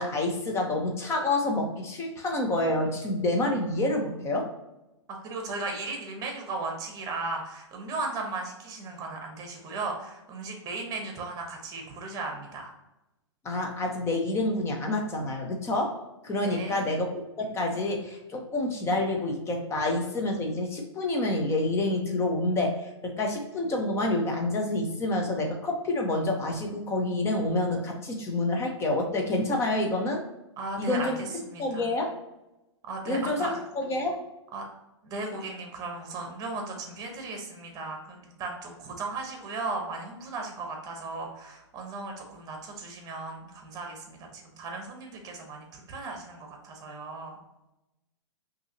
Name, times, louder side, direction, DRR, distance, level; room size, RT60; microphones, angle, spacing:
voice 1, 0.0-4.5 13.4-17.1 17.4-30.2 30.8-31.2 31.6-32.1 33.1-34.2, left 2 dB, 15° left, 2 dB, 0.9 m, -28 dB
voice 2, 5.1-12.7 16.4-16.9 30.6-31.9 32.8-33.6 34.5-34.6 35.0-47.4, right 3 dB, 25° right, 2 dB, 1.2 m, -36 dB
5.4 x 2.9 x 2.9 m, 0.95 s
hypercardioid pair, 120°, 15 cm